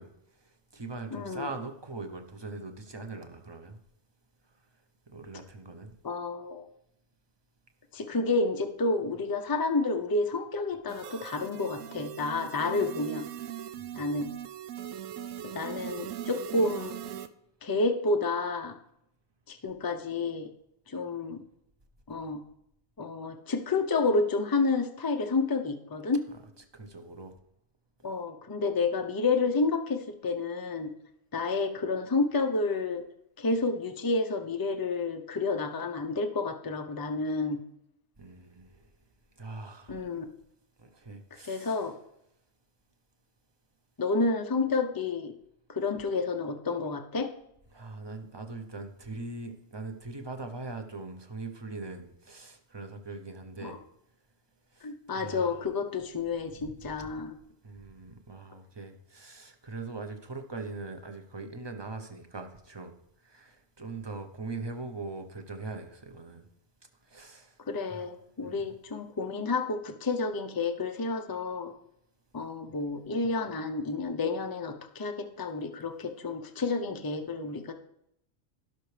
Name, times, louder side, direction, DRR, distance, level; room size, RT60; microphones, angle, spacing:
voice 1, 0.0-3.8 5.1-6.0 13.7-14.1 26.7-27.3 38.2-38.9 39.4-40.1 40.8-41.9 47.7-53.8 54.7-55.6 56.5-57.1 57.6-66.5 67.0-67.6 67.9-68.1 68.4-68.6, right 3 dB, 25° right, 0.7 m, -41 dB
voice 2, 1.1-1.5 6.0-6.7 7.9-13.2 13.9-14.3 15.5-17.0 17.6-18.8 19.5-20.5 20.9-21.4 22.1-22.4 23.0-26.2 28.0-30.9 31.3-33.0 33.4-37.6 39.9-40.3 41.4-41.9 44.0-45.3 45.7-47.3 53.6-53.8 54.8-57.4 67.7-71.7 72.3-77.7, left 3 dB, 25° left, 0.5 m, -30 dB
sound 1, 10.9-17.3, right 10 dB, 85° right, 1.0 m, -40 dB
17.0 x 5.9 x 3.3 m
omnidirectional pair, 1.3 m